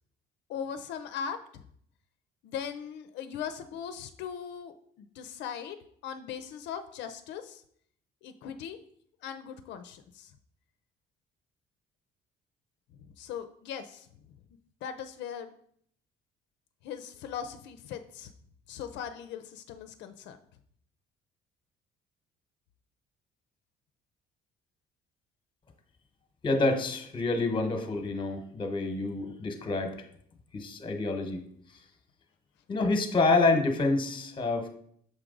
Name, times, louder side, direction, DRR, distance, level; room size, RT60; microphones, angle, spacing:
voice 1, 0.5-1.7 2.4-5.8 6.0-7.6 8.2-8.8 9.2-10.3 13.0-14.1 14.8-15.5 16.8-18.3 18.7-20.4, left 8 dB, 80° left, 8 dB, 0.5 m, -39 dB
voice 2, 26.4-29.9 30.5-31.4 32.7-34.7, left 3 dB, 25° left, 6 dB, 1.0 m, -27 dB
6.6 x 4.7 x 3.8 m, 0.65 s
cardioid pair, 120°, 18 cm